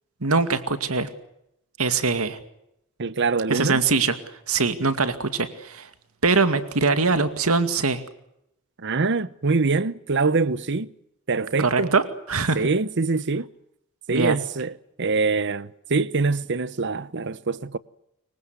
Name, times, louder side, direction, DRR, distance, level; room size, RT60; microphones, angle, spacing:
voice 1, 0.2-1.1 1.8-2.4 3.5-4.2 4.5-5.9 6.2-8.0 11.6-12.6 14.1-14.4, right 4 dB, 80° right, 2.2 m, -22 dB
voice 2, 3.0-3.8 8.8-10.9 11.3-11.9 12.5-13.5 14.1-17.8, right 4 dB, 55° right, 1.0 m, -24 dB
26.0 x 24.0 x 8.1 m
head